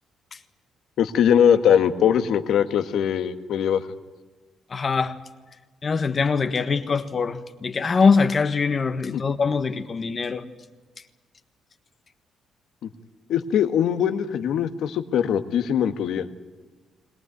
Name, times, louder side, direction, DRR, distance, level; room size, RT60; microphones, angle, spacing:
voice 1, 1.0-3.8 9.1-9.2 13.3-16.3, left 8 dB, 75° left, 1.5 m, -21 dB
voice 2, 4.7-5.2 5.8-10.4, left 5 dB, 40° left, 1.4 m, -23 dB
22.0 x 19.0 x 9.4 m
cardioid pair, 90°, 0 cm